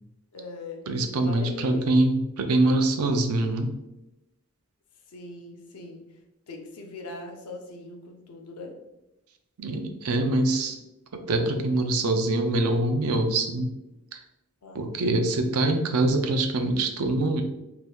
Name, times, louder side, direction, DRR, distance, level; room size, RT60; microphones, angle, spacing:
voice 1, 0.3-0.8 1.2-1.9 5.1-6.1 6.5-8.8 14.6-15.0, left 2 dB, 85° left, 2 dB, 0.6 m, -41 dB
voice 2, 0.9-3.7 9.6-10.8 11.1-13.7 14.7-17.4, right 2 dB, 80° right, 6 dB, 0.4 m, -24 dB
2.8 x 2.2 x 3.3 m, 0.92 s
head